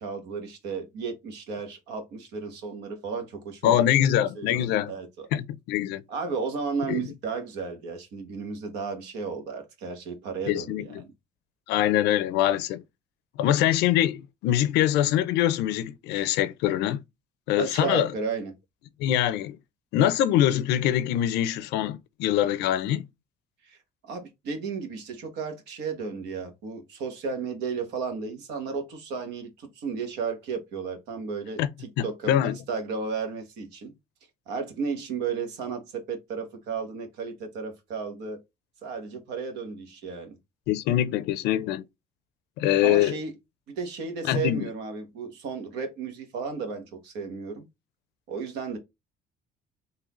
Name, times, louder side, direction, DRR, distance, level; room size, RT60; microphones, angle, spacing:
voice 1, 0.0-3.8 4.3-5.3 6.1-11.0 17.6-18.5 23.6-23.8 24.0-33.9 34.5-38.4 38.8-40.4 42.8-43.3 43.7-47.7 48.3-48.8, right 5 dB, 85° right, 1.3 m, -34 dB
voice 2, 3.6-4.9 5.3-6.0 6.9-7.0 10.5-11.0 11.7-12.8 13.4-17.0 17.5-18.1 19.0-19.6 19.9-23.1 31.6-31.7 32.0-32.6 40.7-41.8 42.6-43.2 44.2-44.7, left 12 dB, 90° left, 0.5 m, -24 dB
3.9 x 2.8 x 3.0 m
cardioid pair, 110°, 17 cm